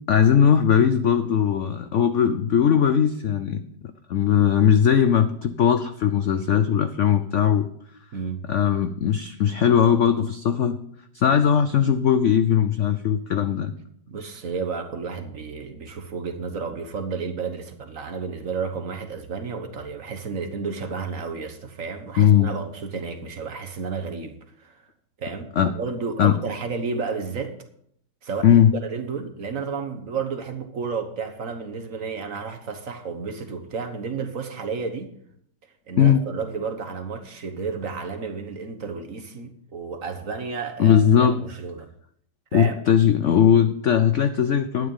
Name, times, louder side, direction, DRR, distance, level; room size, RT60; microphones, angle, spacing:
voice 1, 0.1-3.6 4.1-7.7 8.5-10.8 11.1-13.7 22.2-22.5 25.6-25.7 26.2-26.4 28.4-28.7 36.0-36.2 40.8-41.4 42.5-44.9, left 8 dB, 80° left, 0.6 m, -19 dB
voice 2, 8.1-8.5 11.3-11.4 14.1-24.8 25.2-27.5 28.2-35.1 35.9-41.9 42.5-42.8, right 5 dB, 50° right, 1.4 m, -32 dB
12.0 x 9.5 x 5.5 m
omnidirectional pair, 2.1 m